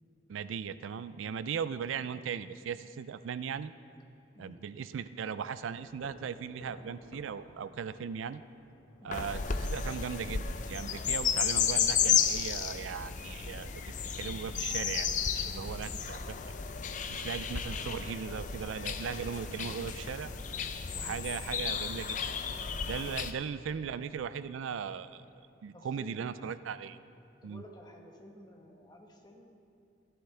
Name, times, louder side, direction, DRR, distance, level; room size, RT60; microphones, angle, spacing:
voice 1, 0.3-3.7 4.4-8.4 9.0-15.1 15.3-16.4 17.1-20.3 21.0-22.2 22.9-27.0 27.4-27.6, right 7 dB, 90° right, 14 dB, 0.4 m, -38 dB
sound 1, 5.5-10.5, equal, 85° left, 1.5 m, -57 dB
sound 2, 9.1-23.3, left 7 dB, 40° left, 0.5 m, -33 dB
voice 2, 25.7-26.5 27.4-29.6, left 1 dB, 20° left, 1 dB, 1.1 m, -53 dB
14.5 x 11.5 x 3.3 m, 2.6 s
head